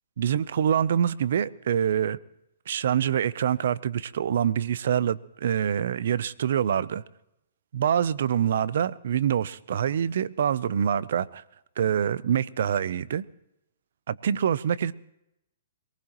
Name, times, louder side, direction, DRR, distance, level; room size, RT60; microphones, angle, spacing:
voice 1, 0.2-2.2 2.7-7.0 7.7-11.4 11.8-13.2 14.1-14.9, right 9 dB, 65° right, 0.6 m, -25 dB
22.5 x 19.5 x 3.0 m
hypercardioid pair, 155°, 0 cm